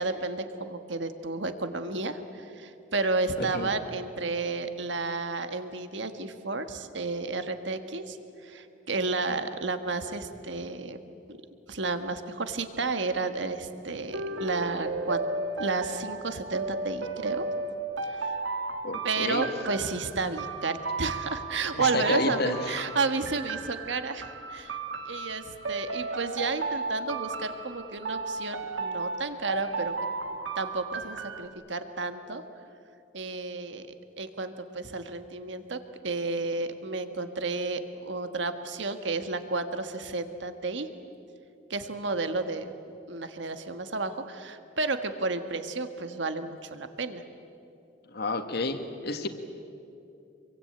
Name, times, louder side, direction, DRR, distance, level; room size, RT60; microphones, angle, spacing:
voice 1, 0.0-8.2 8.4-11.0 11.3-11.4 11.7-15.2 15.6-17.5 18.1-18.3 19.0-24.8 25.0-29.9 30.6-32.4 33.1-33.9 34.2-40.9 41.7-42.7 43.1-47.2, right 3 dB, 65° right, 8 dB, 1.5 m, -32 dB
voice 2, 3.4-3.7 18.8-19.5 21.7-22.8 48.1-49.3, left 2 dB, 60° left, 7 dB, 1.7 m, -30 dB
sound 1, 14.1-31.5, right 3 dB, 85° right, 1.7 m, -34 dB
27.0 x 23.0 x 8.9 m, 2.7 s
head